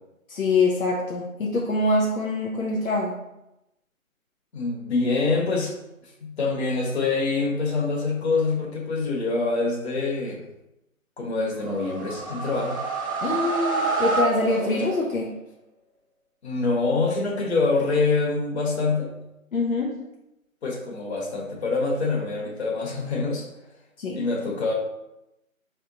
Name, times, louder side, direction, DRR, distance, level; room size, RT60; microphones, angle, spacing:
voice 1, 0.3-3.2 13.2-15.3 19.5-20.0 24.0-24.2, left 2 dB, 75° left, -2 dB, 0.9 m, -24 dB
voice 2, 4.5-5.8 6.2-10.4 11.2-12.8 16.4-19.2 20.6-23.5 24.1-24.7, left 3 dB, 50° left, -2 dB, 1.4 m, -25 dB
sound 1, 11.6-15.3, right 3 dB, 10° left, 0.9 m, -28 dB
3.7 x 3.5 x 4.0 m, 0.89 s
figure-of-eight pair, 160°, 42 cm